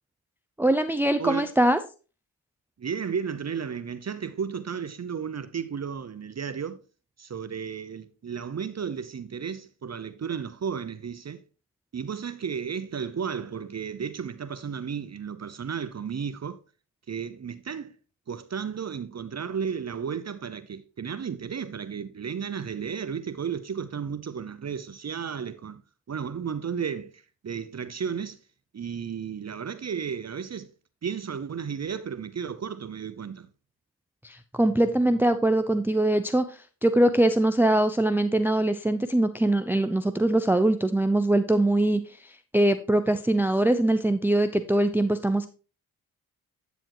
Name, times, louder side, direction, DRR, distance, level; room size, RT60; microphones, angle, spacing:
voice 1, 0.6-1.8 34.2-45.5, right 1 dB, 5° right, 0.6 m, -23 dB
voice 2, 1.2-1.5 2.8-6.8 7.2-11.4 11.9-16.6 17.1-17.9 18.3-25.8 26.1-28.4 28.7-30.7 31.0-33.5, right 7 dB, 40° right, 0.7 m, -33 dB
9.0 x 7.0 x 3.0 m
supercardioid pair, 45°, 42 cm